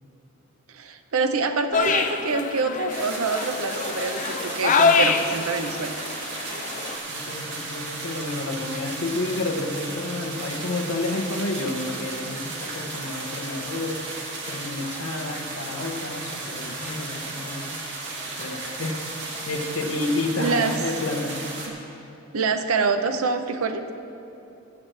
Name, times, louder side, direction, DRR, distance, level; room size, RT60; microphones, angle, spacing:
voice 1, 0.7-6.0 20.4-20.8 22.3-23.8, right 4 dB, 85° right, 8 dB, 0.7 m, -26 dB
sound 1, 1.7-6.9, left 5 dB, 35° left, 0.5 m, -25 dB
sound 2, 2.9-21.7, right 3 dB, 60° right, 1.9 m, -34 dB
voice 2, 7.1-14.0 14.5-17.8 18.4-19.0 19.5-21.5, left 2 dB, 75° left, 2 dB, 1.2 m, -30 dB
21.0 x 7.6 x 3.3 m, 2.8 s
head